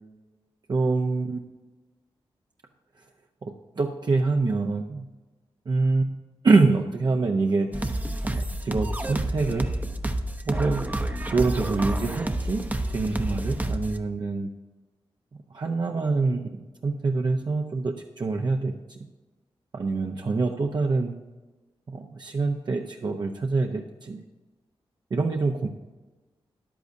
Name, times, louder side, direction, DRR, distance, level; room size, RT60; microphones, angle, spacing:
voice 1, 0.7-1.4 3.4-5.1 5.7-6.2 6.4-9.7 10.5-11.0 11.3-12.6 12.9-14.5 15.5-19.0 19.7-21.2 21.9-24.2 25.1-25.7, right 3 dB, 50° right, 2 dB, 0.7 m, -25 dB
sound 1, 7.7-14.0, right 1 dB, 15° right, 0.8 m, -29 dB
13.5 x 10.5 x 2.7 m, 1.2 s
wide cardioid pair, 105°, 10 cm